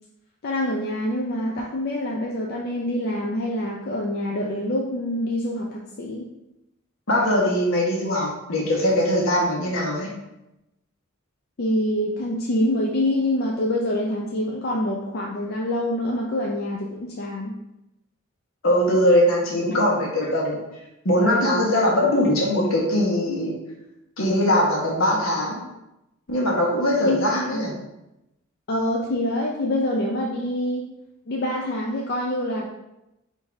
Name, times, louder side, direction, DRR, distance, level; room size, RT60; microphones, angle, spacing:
voice 1, 0.4-6.3 11.6-17.5 27.0-27.2 27.5-27.6 28.7-30.8 31.3-32.7, left 1 dB, 50° left, -1 dB, 0.4 m, -25 dB
voice 2, 7.1-10.1 18.6-20.6 21.0-23.6 24.2-25.6 26.3-27.7, left 1 dB, 75° left, -2 dB, 1.2 m, -21 dB
3.7 x 2.7 x 4.5 m, 0.92 s
head